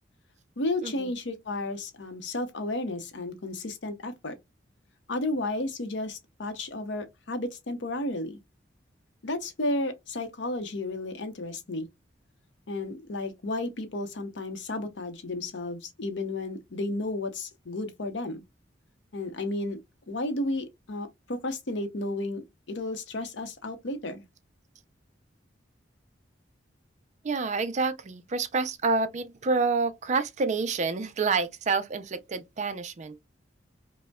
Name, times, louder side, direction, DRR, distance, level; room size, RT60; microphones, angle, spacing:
voice 1, 0.6-4.3 5.1-8.4 9.2-11.9 12.7-18.4 19.1-19.8 20.1-24.2, left 2 dB, 70° left, 0.7 m, -33 dB
voice 2, 27.2-33.2, right 4 dB, 40° right, 0.4 m, -28 dB
5.1 x 2.1 x 2.2 m
head